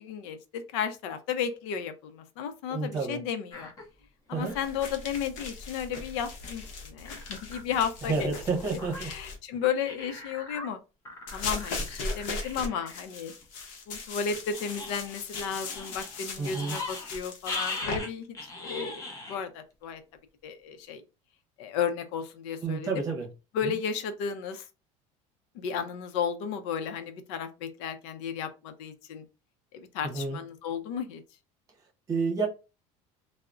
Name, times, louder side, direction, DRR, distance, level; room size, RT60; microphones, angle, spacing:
voice 1, 0.0-3.7 4.3-8.3 8.7-10.8 11.3-13.3 13.9-18.3 18.6-20.0 20.4-21.0 21.6-22.9 23.5-24.7 25.5-29.2 29.7-31.2, left 7 dB, 80° left, 0.5 m, -33 dB
voice 2, 2.7-3.2 4.3-4.5 8.0-9.1 16.4-16.8 22.6-23.3 23.6-23.7 30.0-30.4 32.1-32.5, right 4 dB, 20° right, 0.8 m, -30 dB
sound 1, 3.5-3.8 4.3-4.9 5.7-5.8 6.1-6.2 6.6-6.7 7.0-7.6 8.3-9.0 9.8-10.7 11.0-13.0 13.4-13.5 14.5-17.2 17.5-19.4 19.8-19.9, left 3 dB, 20° left, 0.6 m, -40 dB
sound 2, 4.6-9.4 11.3-18.0, left 3 dB, 60° left, 0.8 m, -39 dB
3.5 x 2.0 x 2.4 m
cardioid pair, 170°, 15 cm